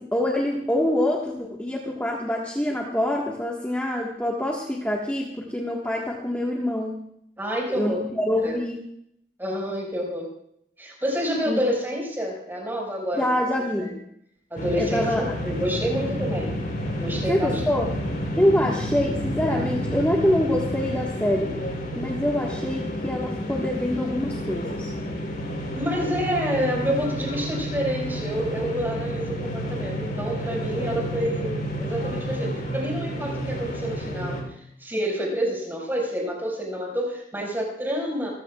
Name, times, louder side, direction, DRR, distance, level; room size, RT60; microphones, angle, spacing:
voice 1, 0.0-7.0 7.7-8.8 11.5-11.6 13.1-14.0 14.8-15.4 17.3-17.9 18.4-21.6 22.0-24.9, left 1 dB, 10° left, -2 dB, 1.6 m, -25 dB
voice 2, 7.4-8.0 8.4-8.6 9.4-10.3 10.8-13.3 13.8-13.9 14.5-16.5 17.0-17.6 25.7-34.4 34.8-38.3, equal, 10° right, -2 dB, 5.5 m, -28 dB
sound 1, 14.6-34.4, equal, 55° left, 3.9 m, -30 dB
27.5 x 15.5 x 2.4 m, 0.72 s
head